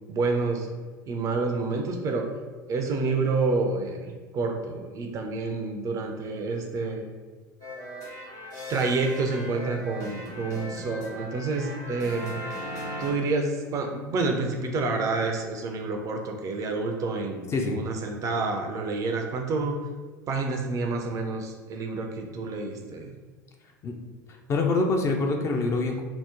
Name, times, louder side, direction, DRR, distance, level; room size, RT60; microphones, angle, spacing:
voice 1, 0.1-0.7 1.1-2.3 2.7-7.1 8.7-12.4 13.0-19.8 20.3-23.1, right 3 dB, 35° right, 3 dB, 0.4 m, -28 dB
sound 1, 7.6-13.1, equal, 70° left, 1.3 m, -38 dB
voice 2, 24.5-26.0, left 3 dB, 25° left, 3 dB, 0.4 m, -25 dB
2.8 x 2.0 x 3.6 m, 1.4 s
figure-of-eight pair, 75°, 10 cm